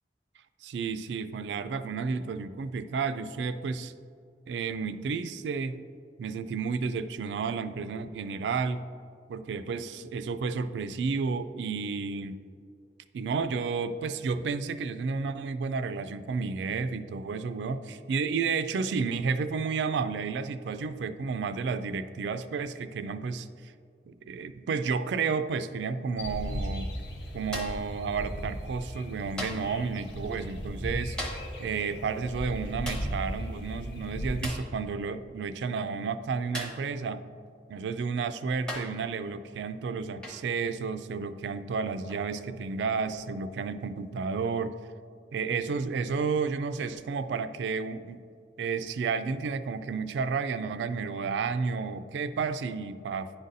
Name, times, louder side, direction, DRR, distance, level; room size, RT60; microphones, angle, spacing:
voice 1, 0.6-3.9 4.5-5.8 6.2-8.8 9.3-12.4 13.1-23.7 24.1-26.9 27.3-31.2 31.6-37.3 37.7-44.8 45.3-48.2 48.6-53.3, right 5 dB, 80° right, 11 dB, 0.3 m, -31 dB
sound 1, 26.2-34.5, equal, 80° left, 0.8 m, -37 dB
sound 2, 27.5-27.9 29.4-29.8 31.2-31.6 32.9-33.2 34.4-34.7 36.5-36.9 38.0-38.1 38.7-39.0 40.2-40.5 42.1-42.3, equal, 5° left, 0.7 m, -38 dB
10.0 x 4.0 x 2.6 m, 2.3 s
head